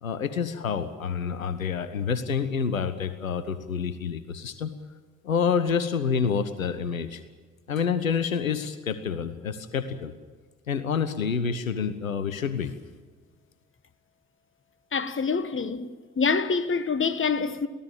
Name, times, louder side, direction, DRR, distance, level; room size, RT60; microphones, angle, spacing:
voice 1, 0.0-4.7 5.2-7.2 7.7-10.1 10.7-12.7, left 6 dB, 85° left, 0.7 m, -28 dB
voice 2, 14.9-15.9 16.2-17.7, left 5 dB, 30° left, 1.4 m, -26 dB
23.0 x 15.5 x 8.9 m
figure-of-eight pair, 40°, 39 cm